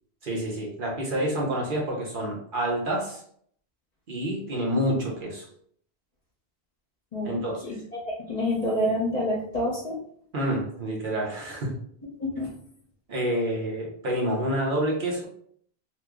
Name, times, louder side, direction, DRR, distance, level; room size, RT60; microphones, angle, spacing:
voice 1, 0.2-3.2 4.1-5.5 7.2-7.8 10.3-11.7 13.1-15.2, right 1 dB, 55° right, -2 dB, 0.9 m, -28 dB
voice 2, 8.0-10.0 12.2-12.5, left 1 dB, 40° left, -3 dB, 0.8 m, -27 dB
3.0 x 2.1 x 3.5 m, 0.62 s
omnidirectional pair, 1.1 m